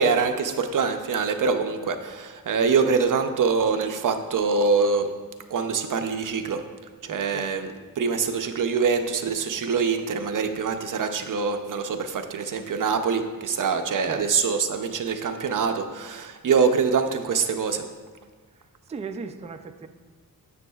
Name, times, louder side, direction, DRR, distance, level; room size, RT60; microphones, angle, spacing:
voice 1, 0.0-5.1 5.5-6.6 7.0-17.8, right 5 dB, 60° right, 6 dB, 0.6 m, -24 dB
voice 2, 18.9-19.9, right 4 dB, 20° right, 7 dB, 0.3 m, -37 dB
9.5 x 7.0 x 2.4 m, 1.5 s
wide cardioid pair, 130°, 37 cm